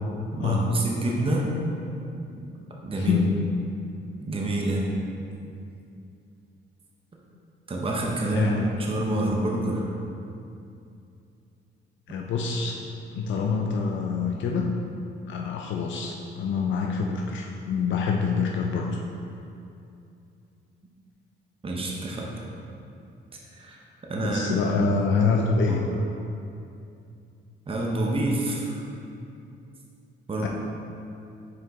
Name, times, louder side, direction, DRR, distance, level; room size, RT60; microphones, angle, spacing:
voice 1, 0.3-1.5 2.7-3.2 4.3-4.8 7.7-9.8 21.6-22.3 23.5-23.8 24.1-24.9 25.7-25.8 27.7-28.8 30.3-30.5, right 1 dB, 30° right, -2 dB, 0.9 m, -27 dB
voice 2, 3.0-3.5 8.2-8.7 12.1-12.8 13.1-14.7 15.3-19.0 24.2-25.8 30.4-30.5, left 5 dB, 70° left, 0 dB, 0.5 m, -26 dB
6.4 x 4.6 x 3.6 m, 2.6 s
cardioid pair, 90°, 20 cm